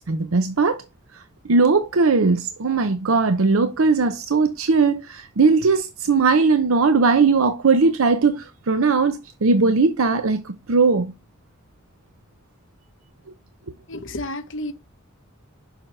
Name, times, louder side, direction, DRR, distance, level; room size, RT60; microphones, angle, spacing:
voice 1, 0.1-0.8 1.1-11.1, right 4 dB, 85° right, 0.7 m, -19 dB
voice 2, 13.9-14.7, left 1 dB, 65° left, 1.4 m, -31 dB
7.0 x 5.7 x 3.3 m
head